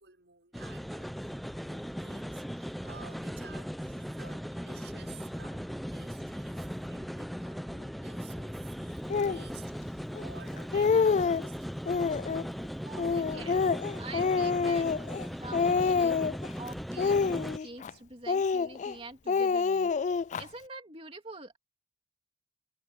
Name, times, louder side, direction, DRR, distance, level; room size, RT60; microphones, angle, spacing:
voice 1, 0.0-11.7, right 6 dB, 85° right, 5.6 m, -54 dB
sound 1, 0.5-17.6, equal, ahead, 0.8 m, -38 dB
Speech, 9.1-9.4 10.2-10.3 10.6-11.5 11.9-12.5 13.0-15.3 15.5-16.5 17.0-17.9 18.3-18.9 19.3-20.4, left 5 dB, 45° left, 0.3 m, -27 dB
voice 2, 12.8-16.2 16.6-21.6, right 2 dB, 35° right, 2.8 m, -46 dB
head